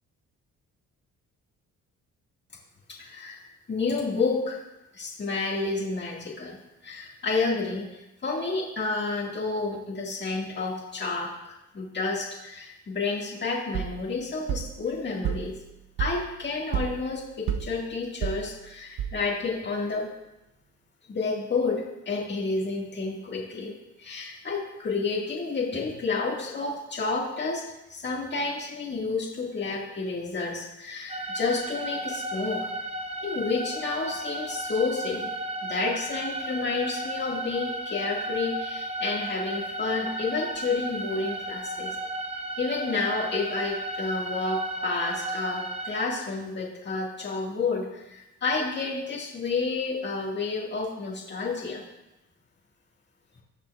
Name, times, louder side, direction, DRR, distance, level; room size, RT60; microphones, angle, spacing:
voice 1, 2.9-3.4 3.7-4.6 4.9-6.6 6.8-7.8 8.2-15.5 16.0-20.1 21.1-23.7 24.0-27.6 27.9-32.6 33.2-35.3 35.6-41.9 42.6-51.8, left 4 dB, 35° left, -2 dB, 1.9 m, -30 dB
sound 1, 13.7-19.6, right 9 dB, 75° right, 0.8 m, -33 dB
sound 2, 31.1-46.0, right 2 dB, 20° right, 1.0 m, -34 dB
17.5 x 5.9 x 2.4 m, 0.96 s
cardioid pair, 90°, 30 cm